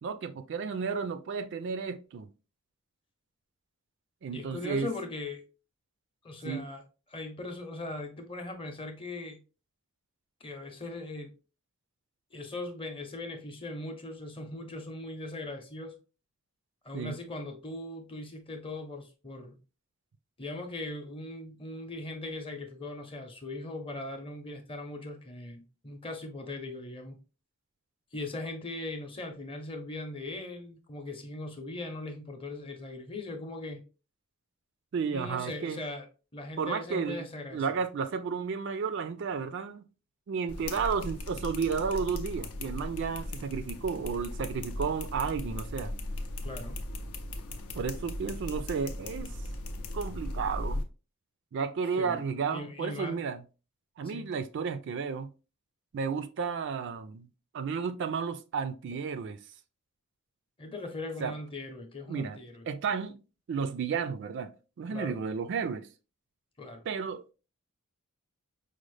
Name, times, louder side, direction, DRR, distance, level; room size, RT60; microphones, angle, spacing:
voice 1, 0.0-2.3 4.2-4.9 6.4-6.6 16.9-17.2 34.9-35.8 36.6-37.2 37.5-39.8 40.3-45.9 47.8-49.3 49.9-50.8 51.5-53.4 54.0-55.3 55.9-57.3 57.5-59.4 61.2-61.3 62.1-62.4 62.7-63.2 63.5-65.9 66.9-67.3, right 5 dB, 55° right, 0.3 m, -32 dB
voice 2, 4.3-5.4 6.2-6.8 7.1-9.4 10.4-11.3 12.3-16.0 16.8-19.6 20.4-27.2 28.1-33.8 35.1-36.1 36.3-37.6 46.4-46.8 52.0-52.2 52.5-53.2 54.0-54.3 60.6-62.6 64.9-65.2 66.6-66.9, left 2 dB, 25° left, 0.7 m, -39 dB
sound 1, 40.5-50.8, left 1 dB, 80° left, 0.6 m, -37 dB
5.1 x 2.1 x 3.1 m
head